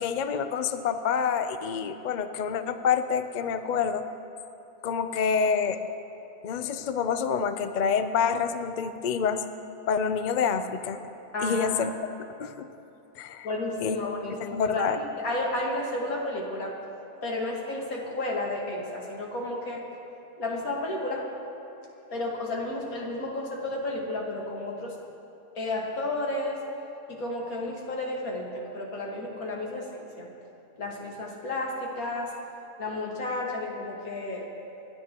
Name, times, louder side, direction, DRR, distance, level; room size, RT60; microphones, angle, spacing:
voice 1, 0.0-4.0 4.8-5.8 6.4-9.4 9.9-11.0 11.4-11.9 12.2-12.7 13.2-13.5 13.8-14.0 14.5-15.0, left 6 dB, 85° left, 9 dB, 0.4 m, -27 dB
voice 2, 11.3-11.8 13.4-16.8 17.2-19.8 20.4-21.3 22.1-25.0 25.6-26.6 27.1-29.9 30.2-30.3 30.8-32.3 32.8-34.5, left 2 dB, 70° left, -2 dB, 2.1 m, -32 dB
27.0 x 10.5 x 2.9 m, 2.8 s
omnidirectional pair, 1.6 m